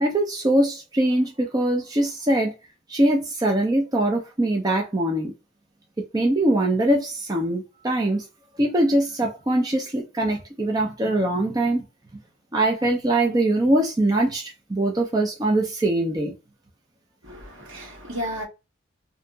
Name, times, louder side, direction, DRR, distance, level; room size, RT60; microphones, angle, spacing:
voice 1, 0.0-2.5 2.9-5.3 6.1-8.2 8.6-11.8 12.5-16.3, right 1 dB, 20° right, 0.4 m, -22 dB
voice 2, 17.2-18.4, equal, 65° right, 1.1 m, -33 dB
2.8 x 2.6 x 2.2 m
head